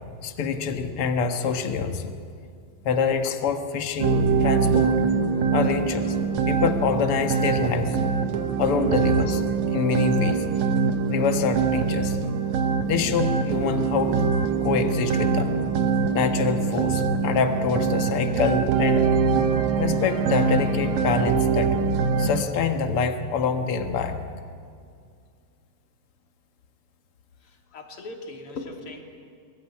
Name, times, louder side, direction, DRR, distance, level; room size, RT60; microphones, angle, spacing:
voice 1, 0.2-2.2 2.8-5.0 5.5-6.2 6.5-8.0 8.6-9.4 9.7-10.4 11.1-12.2 12.8-15.5 16.1-19.1 19.8-21.8 22.2-24.3, left 6 dB, 65° left, 6 dB, 1.4 m, -26 dB
sound 1, 4.0-22.4, right 5 dB, 70° right, 1.8 m, -23 dB
voice 2, 27.4-29.0, left 3 dB, 35° left, 2 dB, 3.3 m, -39 dB
26.5 x 22.5 x 9.9 m, 2.3 s
omnidirectional pair, 4.9 m